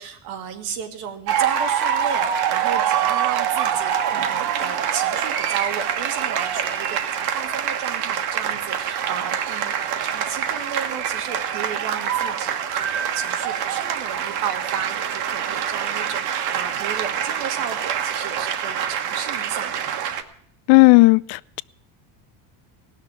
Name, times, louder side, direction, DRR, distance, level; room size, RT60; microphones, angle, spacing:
voice 1, 0.0-19.9, right 8 dB, 85° right, 5 dB, 2.0 m, -33 dB
sound 1, 1.3-20.2, right 9 dB, 55° right, 1.4 m, -25 dB
voice 2, 20.7-21.6, left 26 dB, 60° left, 20 dB, 0.5 m, -14 dB
17.5 x 6.6 x 9.1 m, 0.66 s
cardioid pair, 130°, 47 cm